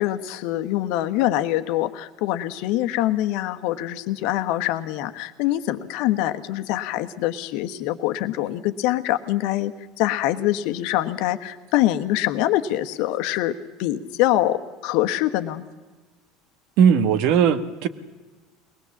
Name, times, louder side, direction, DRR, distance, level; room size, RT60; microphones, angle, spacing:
voice 1, 0.0-13.5 13.8-15.6, left 14 dB, 65° left, 9 dB, 1.3 m, -24 dB
voice 2, 16.8-17.9, right 7 dB, 60° right, 12 dB, 1.3 m, -18 dB
22.0 x 20.0 x 7.2 m, 1.3 s
hypercardioid pair, 75°, 0 cm